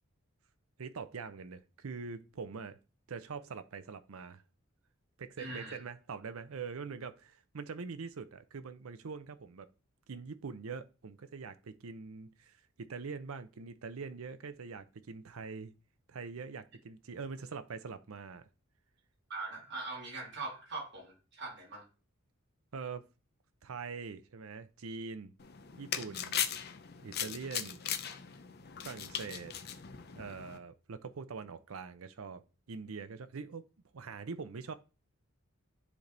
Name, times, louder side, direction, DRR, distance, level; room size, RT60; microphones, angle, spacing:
voice 1, 0.8-2.8 3.1-4.4 5.2-9.7 10.1-15.7 16.1-18.5 22.7-23.0 23.6-25.3 25.8-26.4 27.0-27.8 28.8-29.5 30.1-32.4 32.7-33.6 33.9-34.7, right 5 dB, 85° right, 0.6 m, -43 dB
voice 2, 5.4-5.8 19.3-21.8, right 3 dB, 55° right, 2.6 m, -42 dB
sound 1, 25.4-30.6, left 9 dB, 50° left, 0.6 m, -39 dB
9.8 x 3.4 x 3.9 m
head